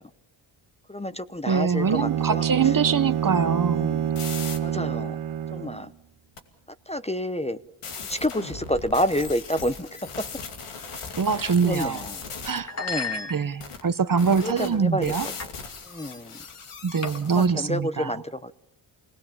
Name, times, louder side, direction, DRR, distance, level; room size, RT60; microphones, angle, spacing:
voice 1, 0.9-2.7 3.7-4.1 4.6-5.2 5.5-5.9 6.9-7.6 8.1-9.9 10.2-10.3 11.4-12.2 12.8-13.3 14.4-15.3 15.8-16.4 17.3-18.5, equal, 15° left, 0.8 m, -29 dB
voice 2, 1.5-3.9 11.2-12.0 12.4-12.7 13.3-15.3 16.8-18.1, right 5 dB, 40° right, 1.0 m, -23 dB
Bowed string instrument, 1.8-5.9, right 10 dB, 90° right, 1.6 m, -27 dB
sound 1, 2.9-4.6 6.4-6.5 7.8-12.6 13.6-13.8 14.2-17.5, left 5 dB, 85° left, 2.6 m, -39 dB
sound 2, 11.8-12.0 12.6-13.8 14.4-14.8 15.4-15.6 15.9-16.1 17.0-17.5, left 3 dB, 30° left, 1.8 m, -34 dB
26.0 x 19.5 x 7.3 m
cardioid pair, 70°, 50 cm